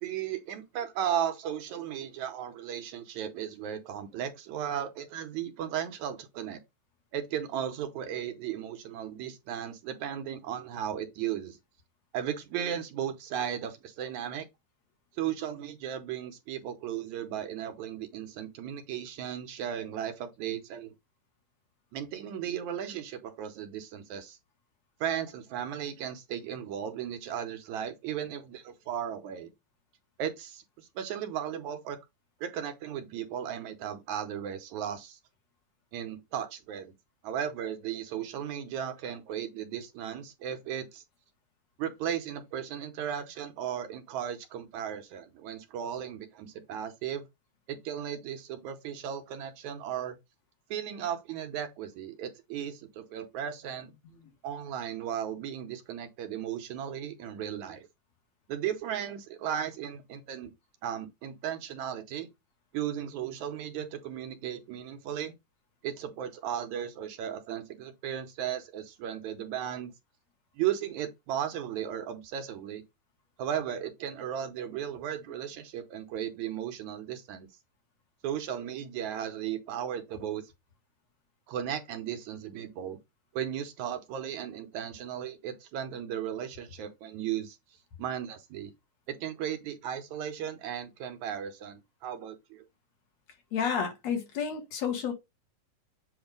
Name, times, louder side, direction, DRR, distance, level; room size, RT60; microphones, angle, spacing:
voice 1, 0.0-6.6 7.1-11.6 12.1-14.5 15.2-20.9 21.9-24.4 25.0-29.5 30.2-32.0 32.4-35.2 35.9-36.9 37.2-41.0 41.8-47.3 47.7-50.2 50.7-53.9 54.4-57.9 58.5-60.5 60.8-62.3 62.7-65.3 65.8-69.9 70.6-72.8 73.4-77.5 78.2-80.4 81.5-83.0 83.3-87.6 88.0-88.7 89.1-92.7, right 9 dB, 75° right, 2.1 m, -35 dB
voice 2, 93.5-95.1, left 7 dB, 60° left, 2.7 m, -31 dB
8.0 x 2.7 x 5.2 m
omnidirectional pair, 3.7 m